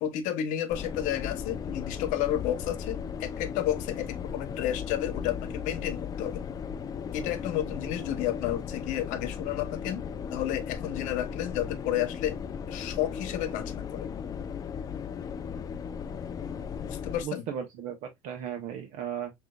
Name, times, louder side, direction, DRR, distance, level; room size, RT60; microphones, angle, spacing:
voice 1, 0.0-6.4 7.1-10.0 10.3-14.1 16.8-17.4, left 11 dB, 65° left, 0.9 m, -31 dB
sound 1, 0.7-17.2, left 7 dB, 25° left, 0.4 m, -36 dB
voice 2, 17.2-19.3, right 9 dB, 65° right, 1.0 m, -36 dB
6.0 x 2.9 x 2.3 m
supercardioid pair, 120°, 14 cm